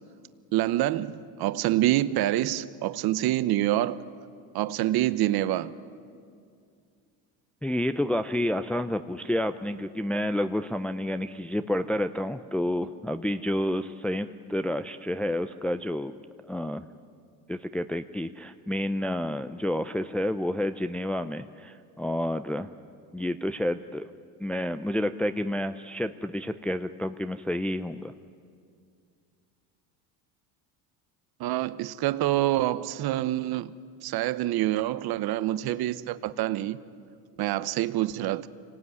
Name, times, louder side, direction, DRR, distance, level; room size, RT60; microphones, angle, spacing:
voice 1, 0.5-4.0 4.5-5.7 31.4-33.7 34.0-36.8 37.4-38.5, right 14 dB, 55° right, 1.0 m, -26 dB
voice 2, 7.6-16.1 16.4-16.8 17.5-22.7 23.1-24.1 24.4-28.1, left 1 dB, 5° left, 0.5 m, -29 dB
25.5 x 18.5 x 9.7 m
supercardioid pair, 110°, 44 cm